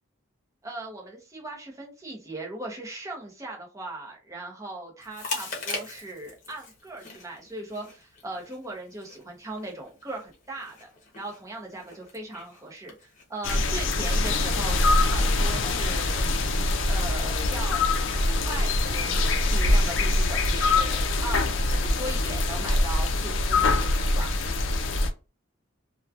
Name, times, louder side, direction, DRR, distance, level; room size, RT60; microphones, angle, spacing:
voice 1, 0.6-10.9 11.2-16.3 16.9-24.3, right 2 dB, 15° right, -1 dB, 0.8 m, -39 dB
Chewing mastication, 5.0-19.6, left 2 dB, 40° left, 0.9 m, -44 dB
sound 1, 13.4-25.1, left 2 dB, 65° left, 0.5 m, -24 dB
3.1 x 2.3 x 2.3 m, 0.31 s
head